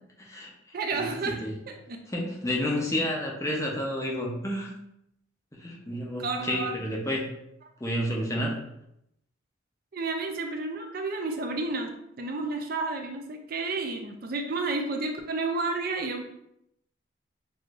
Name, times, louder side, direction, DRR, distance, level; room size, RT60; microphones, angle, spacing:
voice 1, 0.2-1.6 2.1-4.7 5.5-7.3 7.8-8.6, left 1 dB, 15° left, -1 dB, 0.6 m, -30 dB
voice 2, 0.7-1.4 1.9-2.0 6.2-6.7 9.9-11.9 12.2-16.4, right 3 dB, 50° right, 4 dB, 0.5 m, -31 dB
6.2 x 2.5 x 2.4 m, 0.78 s
head